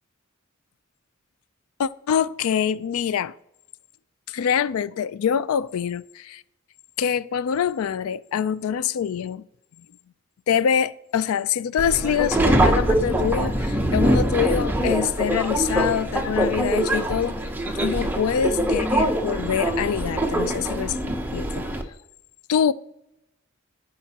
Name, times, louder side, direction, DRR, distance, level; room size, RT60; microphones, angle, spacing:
voice 1, 1.8-3.3 4.3-6.4 7.0-9.4 10.5-17.4 17.7-21.0 21.3-21.8 22.5-22.7, left 8 dB, 90° left, 0.4 m, -25 dB
Subway metro underground, 11.8-21.8, right 1 dB, 10° right, 0.7 m, -23 dB
14.5 x 4.9 x 2.9 m
head